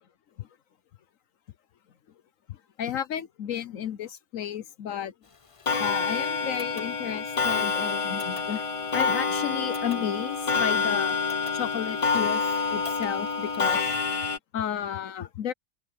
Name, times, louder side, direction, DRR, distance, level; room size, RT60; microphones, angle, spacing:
voice 1, 2.5-5.1 5.8-8.7 8.9-11.1 11.5-12.4 12.7-13.8 14.5-15.5, left 9 dB, 70° left, 1.2 m, -33 dB
Clock, 5.7-14.4, left 5 dB, 30° left, 0.6 m, -27 dB
open air
omnidirectional pair, 1.5 m